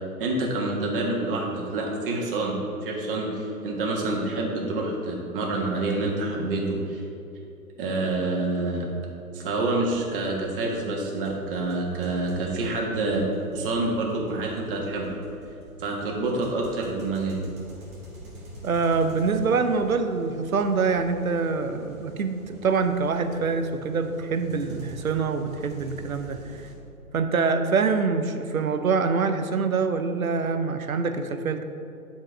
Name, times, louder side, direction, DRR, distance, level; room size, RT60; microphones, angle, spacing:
voice 1, 0.2-2.5 2.8-7.0 7.8-8.8 9.3-13.2 13.5-15.1 15.8-17.4, right 2 dB, 40° right, -1 dB, 1.5 m, -27 dB
sound 1, 9.8-10.1 10.6-10.7 11.2-26.7, right 1 dB, 15° right, 1.4 m, -46 dB
voice 2, 18.6-26.7 27.1-31.6, right 4 dB, 65° right, 8 dB, 0.7 m, -25 dB
9.8 x 4.6 x 4.6 m, 2.7 s
figure-of-eight pair, 120°, 44 cm